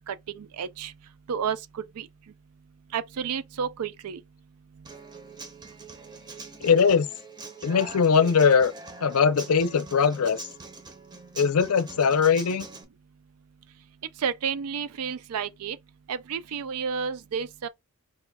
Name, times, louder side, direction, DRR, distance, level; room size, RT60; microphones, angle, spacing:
voice 1, 0.1-0.9 1.3-2.1 2.9-4.2 14.2-15.8 16.1-17.7, right 7 dB, 85° right, 0.4 m, -31 dB
Human voice / Acoustic guitar, 4.8-12.8, right 3 dB, 20° right, 0.6 m, -43 dB
voice 2, 6.6-7.1 7.6-8.7 9.0-10.4 11.4-12.7, left 6 dB, 75° left, 0.5 m, -21 dB
4.3 x 2.2 x 3.4 m
head